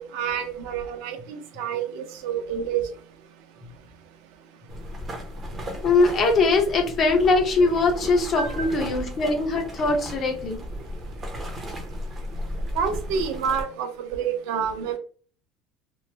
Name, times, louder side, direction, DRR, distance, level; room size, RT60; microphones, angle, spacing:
voice 1, 0.0-2.8 8.4-8.8 12.7-15.0, right 7 dB, 70° right, 7 dB, 0.5 m, -28 dB
sound 1, 4.7-13.6, equal, 15° right, 0.6 m, -35 dB
voice 2, 5.8-10.6, left 3 dB, 25° left, 3 dB, 0.6 m, -21 dB
3.0 x 2.0 x 3.2 m, 0.41 s
cardioid pair, 180°, 0 cm